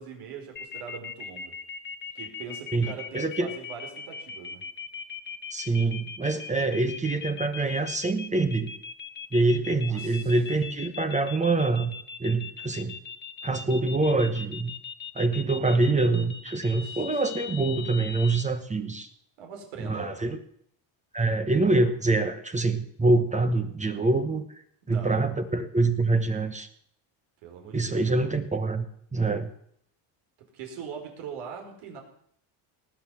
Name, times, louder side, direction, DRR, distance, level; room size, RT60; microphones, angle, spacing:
voice 1, 0.0-1.5 2.1-4.6 9.9-10.3 16.7-17.0 19.4-20.2 24.9-25.3 27.4-28.1 30.4-32.0, right 6 dB, 80° right, 2 dB, 5.1 m, -41 dB
sound 1, 0.6-18.4, left 6 dB, 20° left, 1.0 m, -39 dB
voice 2, 2.7-3.5 5.5-8.7 9.3-12.9 13.4-14.7 15.1-19.1 19.8-20.4 21.1-24.4 24.9-26.7 27.7-28.9 29.1-29.5, right 3 dB, 15° right, 8 dB, 1.2 m, -25 dB
19.5 x 8.7 x 7.3 m, 0.66 s
cardioid pair, 130°, 49 cm